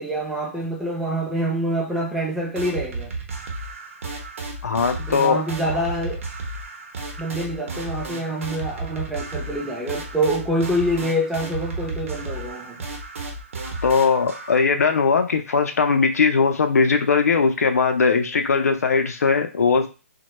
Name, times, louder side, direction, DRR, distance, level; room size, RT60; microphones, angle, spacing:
voice 1, 0.0-3.1 5.0-6.2 7.2-12.8, right 1 dB, 5° right, 0.4 m, -26 dB
sound 1, 2.5-14.6, right 3 dB, 60° right, 0.8 m, -33 dB
voice 2, 4.6-5.4 13.8-19.9, left 5 dB, 90° left, 0.5 m, -19 dB
2.1 x 2.1 x 2.9 m
hypercardioid pair, 160°, 8 cm